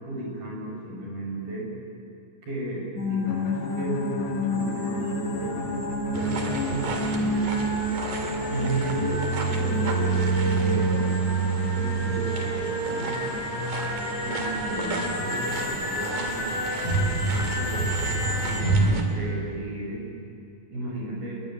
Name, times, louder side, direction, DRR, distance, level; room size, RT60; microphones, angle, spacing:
voice 1, 0.0-1.7 2.4-5.9 6.1-7.8 8.5-9.2 9.5-11.1 11.7-13.4 14.2-16.5 17.3-20.0 20.7-21.4, right 2 dB, 75° right, -2 dB, 8.5 m, -34 dB
sound 1, 3.0-18.6, left 1 dB, 30° left, 7.2 m, -30 dB
Bowed string instrument, 3.2-7.4, left 4 dB, 60° left, 3.3 m, -36 dB
sound 2, 6.1-19.0, right 4 dB, 60° right, 3.7 m, -28 dB
27.0 x 21.5 x 9.7 m, 2.4 s
omnidirectional pair, 4.1 m